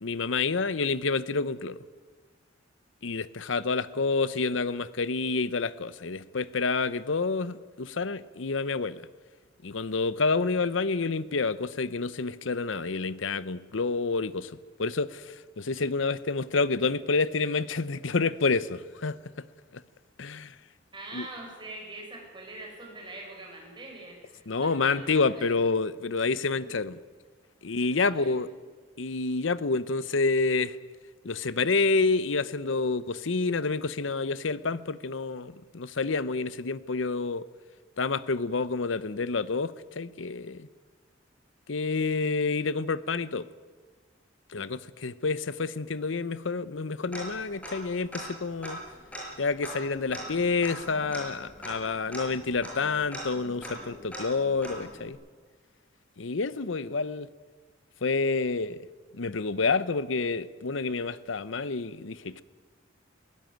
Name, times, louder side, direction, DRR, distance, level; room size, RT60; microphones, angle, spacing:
voice 1, 0.0-1.8 3.0-9.0 9.6-14.5 14.8-19.2 19.7-19.8 20.2-20.5 21.1-21.3 24.5-27.0 27.6-28.5 29.0-30.8 31.2-37.5 38.0-40.7 41.7-43.5 44.5-48.8 49.4-55.2 56.2-57.3 58.0-58.8 59.1-62.4, left 4 dB, 80° left, 0.8 m, -28 dB
voice 2, 20.9-25.6 26.6-26.7 27.7-28.5, right 2 dB, 25° right, 6.5 m, -44 dB
Tick-tock, 47.1-47.9 48.1-48.2 48.6-55.1, equal, 5° left, 6.1 m, -41 dB
21.5 x 16.5 x 9.3 m
head